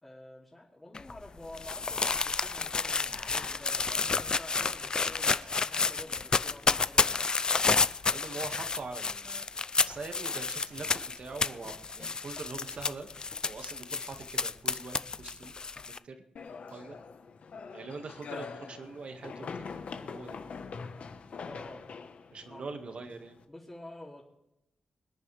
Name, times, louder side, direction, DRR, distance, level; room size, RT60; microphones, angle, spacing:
voice 1, 0.0-7.2 21.4-21.9 22.5-22.6 23.5-24.2, left 1 dB, 15° left, -6 dB, 2.8 m, -49 dB
sound 1, 0.9-16.0, left 4 dB, 35° left, 0.4 m, -30 dB
voice 2, 8.1-13.1 13.4-15.6 15.8-16.2 16.7-17.0 17.7-20.4 22.3-23.4, right 3 dB, 50° right, 5 dB, 1.9 m, -43 dB
sound 2, 16.4-23.4, left 5 dB, 55° left, 1.2 m, -43 dB
25.5 x 10.5 x 3.4 m, 0.84 s
wide cardioid pair, 160°, 3 cm